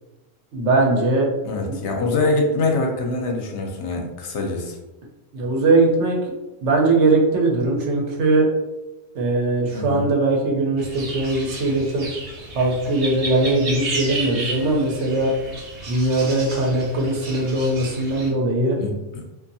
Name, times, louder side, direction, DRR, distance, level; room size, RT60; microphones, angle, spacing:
voice 1, 0.5-1.3 1.7-1.8 5.3-6.2 6.6-8.5 9.1-12.1 12.5-15.4 15.9-18.8, right 2 dB, 90° right, -1 dB, 1.0 m, -20 dB
voice 2, 1.4-4.8 9.7-10.1 18.7-19.3, left 2 dB, 80° left, 2 dB, 0.9 m, -24 dB
sound 1, 10.8-18.3, right 3 dB, 60° right, 0.9 m, -33 dB
2.6 x 2.5 x 2.6 m, 1.0 s
omnidirectional pair, 1.2 m